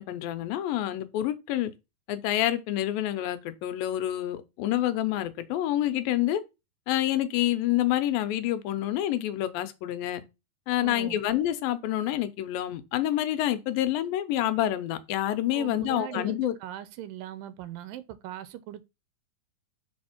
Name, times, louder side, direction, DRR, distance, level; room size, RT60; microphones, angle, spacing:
voice 1, 0.0-1.7 2.1-6.4 6.9-10.2 10.7-16.5, left 13 dB, 85° left, 2.5 m, -28 dB
voice 2, 10.8-11.2 15.5-18.8, right 12 dB, 85° right, 2.3 m, -40 dB
6.3 x 4.4 x 5.8 m
omnidirectional pair, 4.1 m